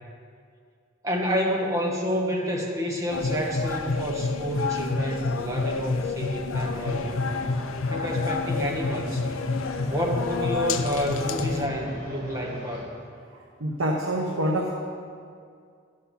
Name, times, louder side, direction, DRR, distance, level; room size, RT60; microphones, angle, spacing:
voice 1, 1.0-7.3 7.9-9.3 9.8-12.9, equal, 15° right, -1 dB, 1.4 m, -29 dB
sound 1, 3.1-11.7, left 4 dB, 80° left, 0.5 m, -28 dB
sound 2, 6.5-12.8, equal, 50° right, 3.1 m, -42 dB
voice 2, 13.4-14.7, right 1 dB, 85° right, 0 dB, 1.0 m, -26 dB
12.5 x 6.5 x 5.8 m, 2.2 s
head